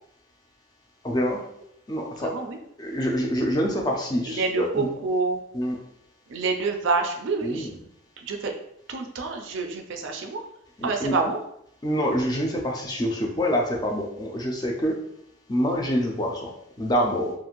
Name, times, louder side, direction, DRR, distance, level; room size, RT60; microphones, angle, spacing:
voice 1, 1.0-1.4 1.9-2.3 2.8-4.9 5.5-5.8 7.4-7.7 10.8-11.1 11.8-15.0 15.5-17.3, equal, 20° left, 0 dB, 0.4 m, -26 dB
voice 2, 2.2-2.6 4.3-5.4 6.3-7.7 8.2-8.6 8.9-10.4 10.8-11.4, right 4 dB, 70° right, 4 dB, 0.4 m, -27 dB
2.5 x 2.4 x 2.9 m, 0.75 s
head